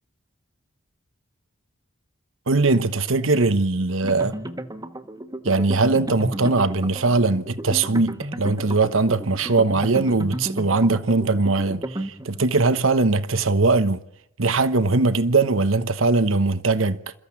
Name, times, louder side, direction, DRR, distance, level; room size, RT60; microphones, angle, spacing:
voice 1, 2.5-4.3 5.4-14.0 14.4-17.0, right 3 dB, 75° right, 1.1 m, -20 dB
sound 1, 4.0-12.6, right 1 dB, 20° right, 1.4 m, -33 dB
28.5 x 14.5 x 8.6 m
head